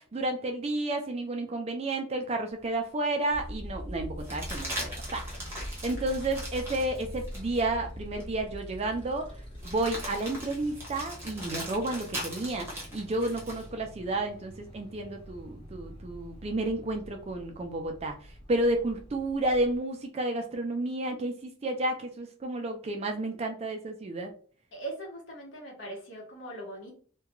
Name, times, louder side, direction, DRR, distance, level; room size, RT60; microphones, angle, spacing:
voice 1, 0.0-9.3 9.6-18.2 18.5-24.3, right 2 dB, 30° right, 4 dB, 0.3 m, -31 dB
sound 1, 2.6-2.7 4.2-7.7 8.2-8.3 9.6-13.7 15.8-16.7, equal, 10° right, 0.8 m, -40 dB
Motorcycle, 3.3-19.8, equal, 25° left, 0.7 m, -44 dB
voice 2, 24.7-26.9, right 2 dB, 60° left, -2 dB, 1.1 m, -40 dB
2.4 x 2.2 x 2.8 m, 0.42 s
head